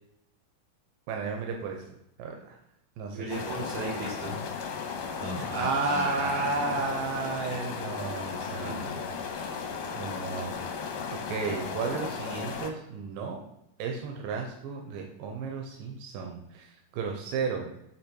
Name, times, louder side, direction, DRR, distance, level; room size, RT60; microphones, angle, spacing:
voice 1, 1.1-1.8 2.2-2.6 3.0-3.3 5.3-8.9 9.9-10.6 11.1-13.4 13.8-17.7, right 4 dB, 90° right, 1 dB, 2.4 m, -33 dB
voice 2, 3.1-4.4 5.2-6.6 8.6-8.9, right 1 dB, 55° right, -6 dB, 4.1 m, -35 dB
sound 1, 3.3-12.7, left 5 dB, 80° left, 2.4 m, -35 dB
7.8 x 3.7 x 4.4 m, 0.83 s
omnidirectional pair, 3.9 m